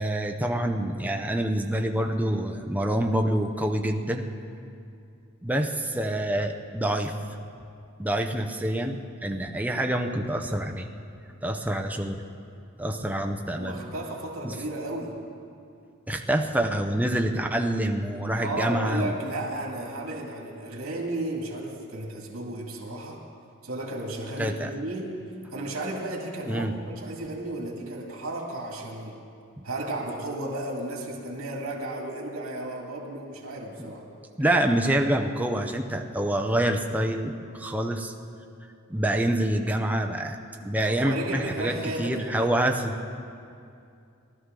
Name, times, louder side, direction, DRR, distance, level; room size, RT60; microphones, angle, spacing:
voice 1, 0.0-4.3 5.4-7.1 8.0-10.9 11.4-12.2 12.8-13.8 14.4-14.6 16.1-19.1 24.4-24.7 26.5-26.7 29.6-29.7 34.4-38.1 38.9-40.4 40.6-41.7 42.0-43.0, right 1 dB, 5° right, 4 dB, 0.6 m, -26 dB
voice 2, 13.6-15.2 18.4-23.2 23.6-25.1 25.5-29.2 29.6-34.1 40.8-42.6, right 1 dB, 80° right, -1 dB, 2.1 m, -34 dB
19.0 x 12.5 x 3.8 m, 2.5 s
head